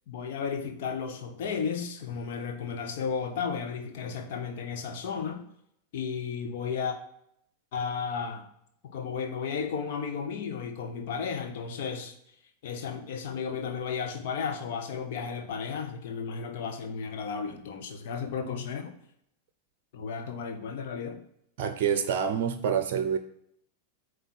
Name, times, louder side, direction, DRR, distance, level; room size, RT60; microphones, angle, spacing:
voice 1, 0.1-5.4 5.9-7.0 7.7-8.5 8.8-12.1 12.6-18.9 19.9-21.2, left 6 dB, 55° left, 5 dB, 1.1 m, -34 dB
voice 2, 21.6-23.2, right 7 dB, 50° right, 9 dB, 0.6 m, -27 dB
9.1 x 3.3 x 6.2 m, 0.72 s
figure-of-eight pair, 90°, 0 cm